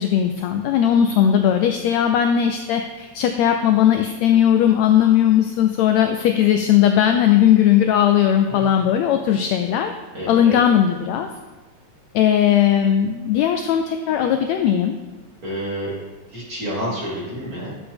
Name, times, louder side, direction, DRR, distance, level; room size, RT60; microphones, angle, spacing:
voice 1, 0.0-9.9 10.3-11.3 12.1-15.0, left 10 dB, 85° left, 6 dB, 1.5 m, -18 dB
voice 2, 10.1-10.6 15.4-15.9 16.3-17.7, equal, 30° right, -6 dB, 2.4 m, -29 dB
10.5 x 6.8 x 3.5 m, 1.2 s
omnidirectional pair, 3.6 m